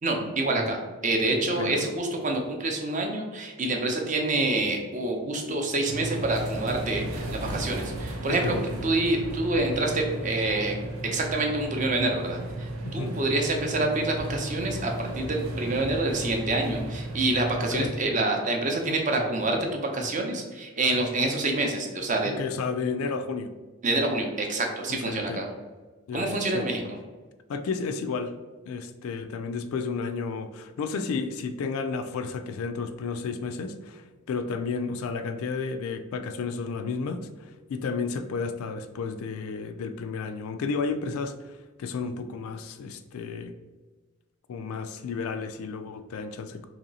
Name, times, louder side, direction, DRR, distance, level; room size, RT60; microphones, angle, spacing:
voice 1, 0.0-8.5 8.8-10.7 11.1-22.4 23.8-25.5 26.1-26.8, right 2 dB, 35° right, 2 dB, 0.6 m, -27 dB
voice 2, 1.4-1.9 8.3-8.6 12.8-13.1 17.7-17.9 22.4-23.5 24.9-25.4 26.1-26.8 27.5-28.3 28.7-43.5 44.5-46.7, left 4 dB, 85° left, 9 dB, 0.3 m, -32 dB
sound 1, 5.9-18.0, right 1 dB, 85° right, 0.5 m, -34 dB
3.0 x 2.8 x 3.9 m, 1.3 s
head